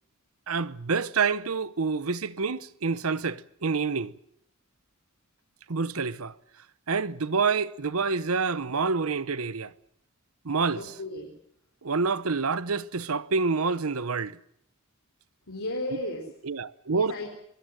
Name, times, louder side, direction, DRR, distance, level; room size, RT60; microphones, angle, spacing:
voice 1, 0.5-4.1 5.7-6.3 6.9-9.7 10.4-10.8 11.8-14.4 16.4-17.1, right 4 dB, 85° right, 0.9 m, -27 dB
voice 2, 10.7-11.3 15.5-16.3 16.9-17.3, left 1 dB, 90° left, 4.6 m, -34 dB
23.5 x 22.0 x 7.7 m
head